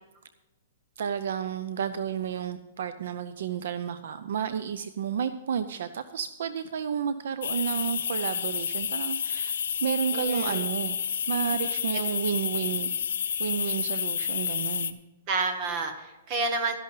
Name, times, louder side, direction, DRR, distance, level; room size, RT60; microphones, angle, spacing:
voice 1, 1.0-11.0 11.3-13.0 13.4-15.0, right 7 dB, 55° right, 12 dB, 0.6 m, -31 dB
sound 1, 7.4-14.9, left 8 dB, 75° left, 0.9 m, -30 dB
voice 2, 10.1-10.7 15.3-16.8, right 3 dB, 25° right, 6 dB, 1.4 m, -29 dB
13.0 x 11.0 x 3.9 m, 1.1 s
hypercardioid pair, 180°, 0 cm